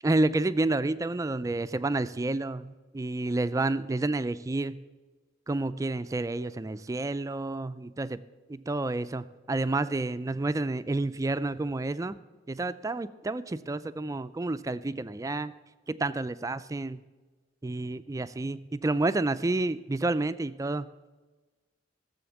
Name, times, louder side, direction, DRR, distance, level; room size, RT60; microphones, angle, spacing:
voice 1, 0.0-4.8 5.5-8.2 8.5-12.2 12.5-15.5 15.9-17.0 17.6-20.9, right 2 dB, 15° right, 13 dB, 0.3 m, -29 dB
15.5 x 7.1 x 7.1 m, 1.3 s
head